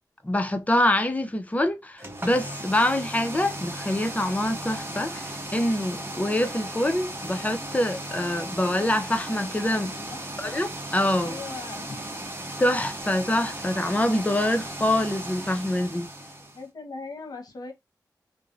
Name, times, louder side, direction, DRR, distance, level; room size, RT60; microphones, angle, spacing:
voice 1, 0.2-9.9 10.4-11.4 12.6-16.1, left 1 dB, 20° left, 0.5 m, -25 dB
sound 1, 2.0-16.6, right 1 dB, 30° right, 0.8 m, -36 dB
voice 2, 9.9-10.2 11.2-12.0 16.5-17.7, left 3 dB, 65° left, 0.9 m, -39 dB
2.5 x 2.0 x 2.4 m
cardioid pair, 50°, 7 cm